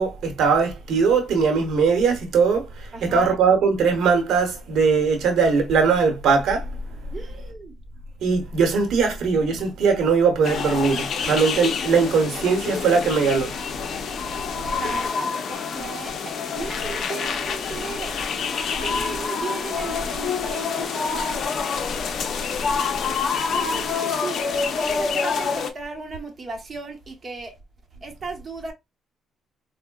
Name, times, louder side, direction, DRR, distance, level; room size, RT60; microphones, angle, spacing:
voice 1, 0.0-7.0 8.2-13.5 14.5-14.6, right 5 dB, 75° right, 0.9 m, -20 dB
voice 2, 2.9-3.3 7.1-7.8 14.6-18.2 18.8-21.3 23.5-24.4 24.7-27.6 28.0-28.7, right 4 dB, 35° right, 0.9 m, -35 dB
sound 1, 10.4-25.7, left 5 dB, 60° left, 0.5 m, -27 dB
4.5 x 2.1 x 2.2 m
cardioid pair, 90°, 0 cm